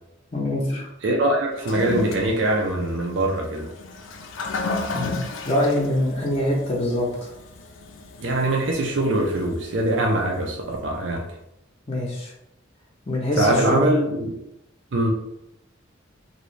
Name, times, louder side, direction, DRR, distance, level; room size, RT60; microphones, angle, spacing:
voice 1, 0.3-0.9 4.9-5.2 5.4-7.3 11.9-12.3 13.1-13.9, left 1 dB, 30° left, -4 dB, 0.6 m, -24 dB
voice 2, 1.0-3.7 8.2-11.2 13.4-14.4 14.9-15.1, right 1 dB, 65° right, 0 dB, 0.5 m, -22 dB
Toilet flush, 1.5-10.8, left 3 dB, 80° left, 0.4 m, -35 dB
3.0 x 2.7 x 3.1 m, 0.82 s
head